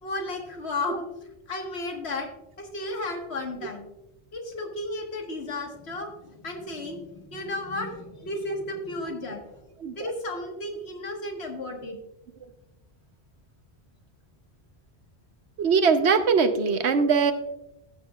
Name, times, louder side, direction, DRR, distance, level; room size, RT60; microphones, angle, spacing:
voice 1, 0.0-1.1 1.5-2.3 2.6-3.9 4.3-9.6 10.0-12.0, left 2 dB, 70° left, 3 dB, 1.7 m, -33 dB
voice 2, 15.6-17.3, right 5 dB, 80° right, 9 dB, 1.1 m, -21 dB
14.5 x 7.6 x 2.3 m, 0.88 s
omnidirectional pair, 1.1 m